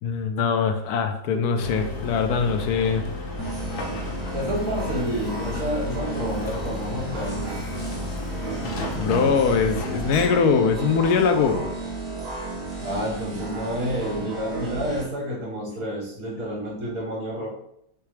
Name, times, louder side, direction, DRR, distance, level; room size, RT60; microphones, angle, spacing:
voice 1, 0.0-3.1 9.0-11.7, left 5 dB, 85° left, 6 dB, 1.1 m, -22 dB
Keyboard (musical), 1.3-4.6, right 4 dB, ahead, 0.3 m, -45 dB
sound 1, 1.6-10.3, left 2 dB, 60° left, 1.2 m, -33 dB
sound 2, 3.4-15.0, right 3 dB, 20° right, 1.4 m, -33 dB
voice 2, 4.3-7.6 12.8-17.5, equal, 65° right, -5 dB, 2.1 m, -29 dB
6.6 x 2.3 x 3.2 m, 0.74 s
omnidirectional pair, 1.6 m